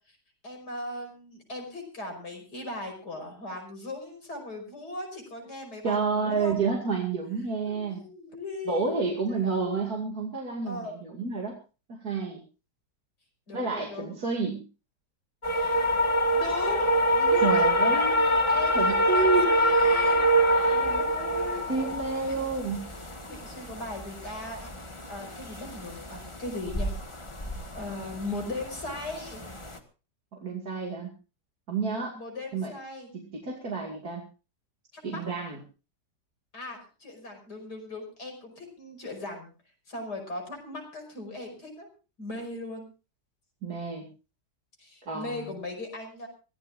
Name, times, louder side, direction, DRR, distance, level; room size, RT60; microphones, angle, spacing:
voice 1, 0.4-6.6 7.7-9.8 10.6-10.9 13.5-14.2 15.5-16.0 16.3-20.2 20.7-21.7 22.3-22.4 23.3-26.9 27.7-29.4 32.1-33.1 34.9-35.2 36.5-39.5 39.9-41.9 42.2-42.9 44.8-46.3, left 2 dB, 70° left, 3 dB, 6.2 m, -38 dB
voice 2, 5.8-8.0 8.7-11.5 11.9-12.4 13.5-14.6 17.4-18.1 18.7-19.5 20.5-20.8 21.7-22.9 30.3-31.1 31.7-32.2 32.5-32.7 33.1-34.2 35.0-35.6 43.6-44.1 45.0-45.5, right 4 dB, 60° right, 0 dB, 3.0 m, -29 dB
sound 1, 15.4-29.8, equal, 20° left, 1.6 m, -26 dB
24.0 x 16.5 x 2.6 m, 0.34 s
omnidirectional pair, 1.8 m